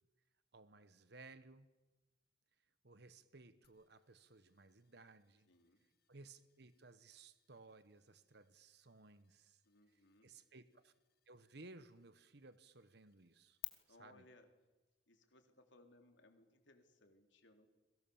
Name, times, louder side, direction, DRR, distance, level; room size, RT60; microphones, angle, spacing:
voice 1, 0.5-1.7 2.8-5.5 6.1-9.6 10.2-10.9 11.3-13.6 14.0-14.2, right 3 dB, 60° right, 12 dB, 1.2 m, -60 dB
sound 1, 3.6-13.7, left 17 dB, 55° left, 1.9 m, -59 dB
voice 2, 5.5-5.9 9.6-10.5 13.8-14.5 15.1-17.7, left 2 dB, 75° left, 5 dB, 3.6 m, -66 dB
30.0 x 22.5 x 7.2 m, 1.1 s
head